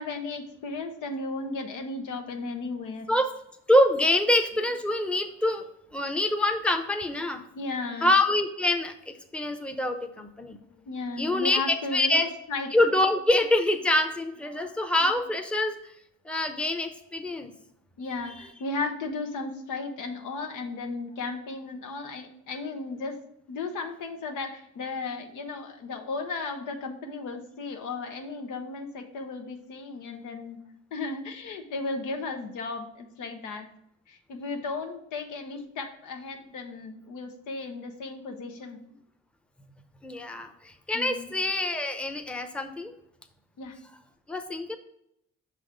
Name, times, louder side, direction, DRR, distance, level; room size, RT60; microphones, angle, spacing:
voice 1, 0.0-3.1 7.5-8.1 10.7-12.7 14.5-15.0 18.0-23.2 23.5-30.6 30.9-33.7 34.1-38.8 40.9-41.3 43.6-43.8, left 3 dB, 85° left, 4 dB, 1.0 m, -35 dB
voice 2, 3.7-5.6 5.9-7.4 8.0-8.9 9.3-10.6 11.2-12.3 12.7-15.8 16.3-17.5 40.0-42.9 44.3-44.8, left 1 dB, 5° left, 6 dB, 0.7 m, -25 dB
6.1 x 4.2 x 5.0 m, 0.78 s
cardioid pair, 90°, 30 cm